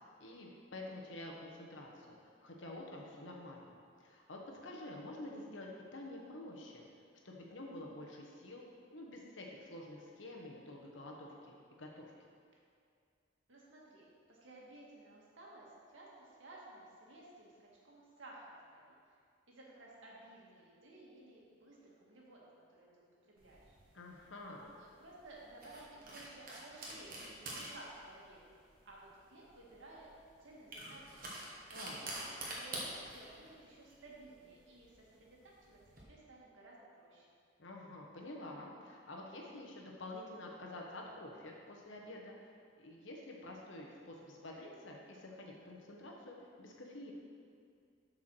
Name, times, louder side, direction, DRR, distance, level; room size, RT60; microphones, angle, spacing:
voice 1, 0.2-3.7 4.0-6.9 7.2-8.6 8.9-12.1 23.9-24.7 31.7-32.1 37.6-42.3 42.8-47.1, left 1 dB, 75° left, -1 dB, 1.2 m, -49 dB
voice 2, 13.5-19.0 19.5-23.8 24.5-28.4 28.9-30.1 30.4-31.3 31.7-37.3, right 2 dB, 75° right, -4 dB, 1.8 m, -56 dB
sound 1, 23.4-36.0, right 1 dB, 45° right, 1.4 m, -48 dB
8.0 x 4.8 x 6.2 m, 2.3 s
head